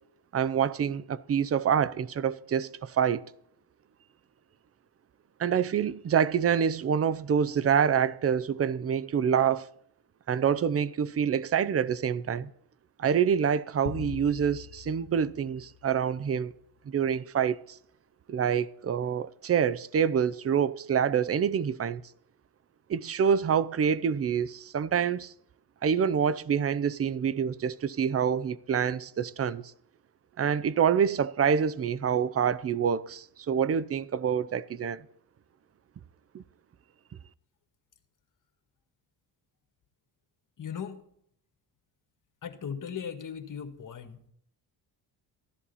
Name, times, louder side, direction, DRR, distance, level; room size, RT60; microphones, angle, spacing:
voice 1, 0.3-3.2 5.4-9.7 10.3-12.5 13.0-16.5 16.9-17.8 18.3-22.0 22.9-25.3 25.8-29.6 30.4-35.0 36.3-36.4, right 7 dB, 35° right, 0.6 m, -26 dB
sound 1, 13.9-16.4, left 12 dB, 65° left, 0.9 m, -43 dB
voice 2, 40.6-41.0 42.4-44.3, left 7 dB, 50° left, 1.8 m, -38 dB
15.0 x 11.0 x 4.2 m
supercardioid pair, 75°, 41 cm